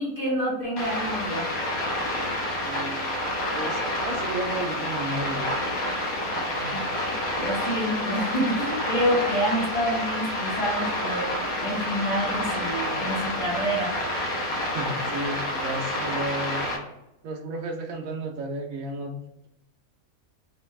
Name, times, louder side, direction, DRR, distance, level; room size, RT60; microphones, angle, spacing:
voice 1, 0.0-1.5 6.3-11.3 11.6-14.0, equal, 30° left, -4 dB, 1.1 m, -28 dB
sound 1, 0.8-16.8, left 1 dB, 75° left, 1.5 m, -29 dB
voice 2, 2.6-3.2 3.5-5.5 14.7-16.7 17.2-19.2, right 1 dB, 75° right, 3 dB, 1.1 m, -33 dB
4.2 x 2.3 x 3.1 m, 0.87 s
omnidirectional pair, 1.5 m